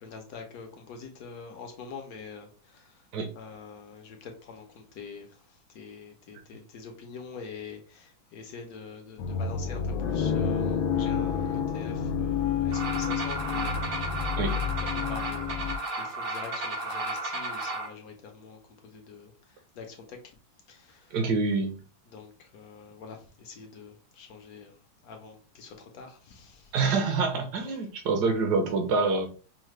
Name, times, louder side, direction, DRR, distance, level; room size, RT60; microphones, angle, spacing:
voice 1, 0.0-3.1 3.3-14.1 15.1-20.2 20.7-21.2 22.1-26.8, left 5 dB, 65° left, 4 dB, 1.0 m, -45 dB
sound 1, 9.2-15.8, left 7 dB, 80° left, 1.4 m, -29 dB
sound 2, 12.7-17.9, right 2 dB, 85° right, 2.2 m, -33 dB
voice 2, 21.1-21.7 26.7-29.3, right 4 dB, 65° right, 4 dB, 1.3 m, -26 dB
5.6 x 2.1 x 3.1 m, 0.38 s
omnidirectional pair, 2.1 m